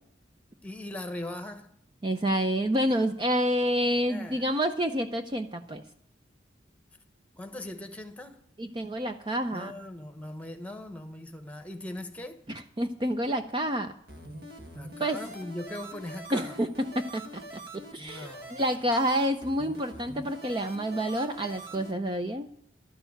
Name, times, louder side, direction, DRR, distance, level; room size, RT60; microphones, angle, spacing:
voice 1, 0.6-1.7 4.1-4.6 7.4-8.4 9.5-12.4 14.7-16.6 18.0-18.6, left 1 dB, 10° left, 1.1 m, -40 dB
voice 2, 2.0-5.8 8.6-9.7 12.5-13.9 15.0-15.2 16.3-16.7 17.0-17.4 17.9-22.5, equal, 25° right, 0.6 m, -28 dB
sound 1, 14.1-21.9, right 1 dB, 55° right, 1.9 m, -44 dB
12.5 x 6.8 x 8.9 m
head